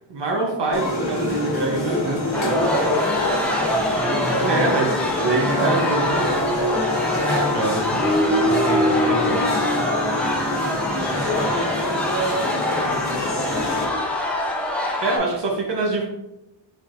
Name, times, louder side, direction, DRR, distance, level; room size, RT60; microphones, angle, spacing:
voice 1, 0.1-2.5 4.4-4.9 5.2-6.4 7.5-8.0 8.4-9.4 15.0-16.0, right 3 dB, 60° right, -1 dB, 0.8 m, -25 dB
sound 1, 0.7-13.9, left 2 dB, 35° left, 1.3 m, -27 dB
sound 2, 2.3-15.2, left 1 dB, 5° left, 0.6 m, -24 dB
voice 2, 2.3-4.6 5.4-7.6 10.0-14.1, right 1 dB, 25° right, -4 dB, 1.3 m, -30 dB
4.5 x 4.4 x 2.5 m, 0.95 s
wide cardioid pair, 150°, 47 cm